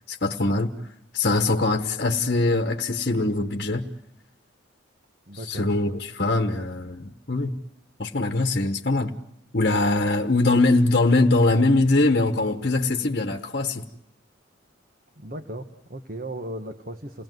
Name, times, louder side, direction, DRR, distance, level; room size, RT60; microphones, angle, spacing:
voice 1, 0.1-0.7 1.1-3.9 5.5-7.6 8.0-9.2 9.5-13.9, left 2 dB, 50° left, 1.2 m, -22 dB
voice 2, 5.3-5.7 15.1-17.2, right 1 dB, 45° right, 1.4 m, -36 dB
28.5 x 19.0 x 9.4 m
head